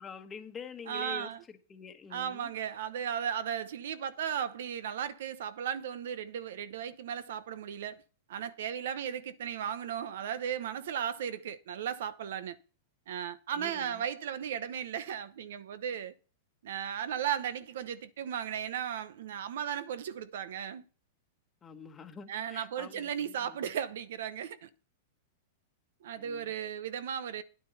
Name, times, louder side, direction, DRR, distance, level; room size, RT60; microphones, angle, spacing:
voice 1, 0.0-1.3 1.7-2.5 13.5-14.0 21.6-23.6 26.2-26.5, left 6 dB, 15° left, 1.3 m, -46 dB
voice 2, 0.9-1.4 2.1-8.0 8.3-12.6 13.1-16.1 16.6-20.8 22.3-24.7 26.0-27.4, right 9 dB, 70° right, 0.9 m, -36 dB
10.0 x 9.0 x 4.1 m
supercardioid pair, 155°, 0 cm